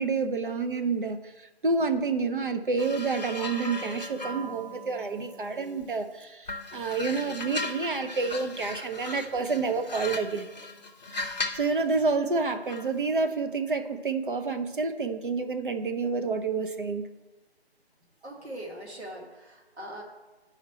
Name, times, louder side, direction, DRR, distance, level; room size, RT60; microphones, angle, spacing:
voice 1, 0.0-10.5 11.5-17.1, right 4 dB, 50° right, 0.7 m, -29 dB
sound 1, 2.8-6.0 6.5-11.7 12.7-12.9, left 2 dB, 40° left, 0.7 m, -37 dB
voice 2, 18.2-20.0, right 1 dB, 90° right, 2.1 m, -41 dB
11.5 x 5.0 x 4.3 m
hypercardioid pair, 175°, 32 cm